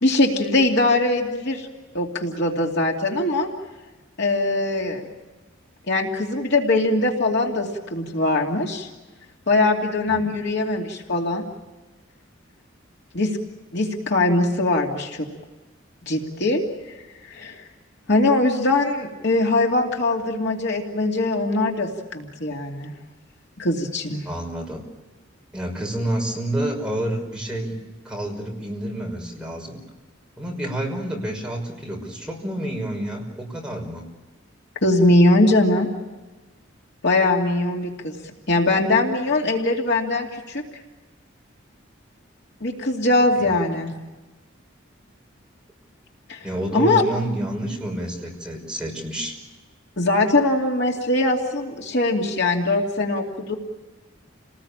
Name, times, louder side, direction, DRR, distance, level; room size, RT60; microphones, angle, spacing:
voice 1, 0.0-1.7 1.9-3.5 4.2-5.1 5.9-8.9 9.5-11.4 13.1-13.3 13.7-15.3 16.1-16.6 17.3-17.6 18.1-22.9 23.6-24.2 34.8-35.9 37.0-38.1 38.5-40.6 42.6-43.9 46.3-46.4 46.7-47.0 50.0-53.5, left 2 dB, 60° left, 1 dB, 2.7 m, -21 dB
voice 2, 10.1-10.4 24.2-24.9 25.5-27.8 28.0-29.8 30.4-34.0 43.4-43.6 46.4-49.4, right 1 dB, 5° right, -1 dB, 5.9 m, -29 dB
29.5 x 20.0 x 8.8 m, 1.2 s
head